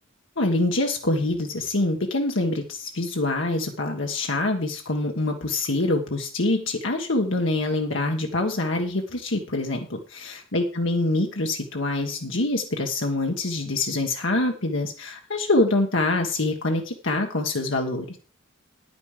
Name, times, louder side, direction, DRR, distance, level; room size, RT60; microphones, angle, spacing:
voice 1, 0.4-18.2, left 2 dB, 70° left, 2 dB, 1.4 m, -25 dB
10.0 x 9.5 x 4.9 m, 0.38 s
head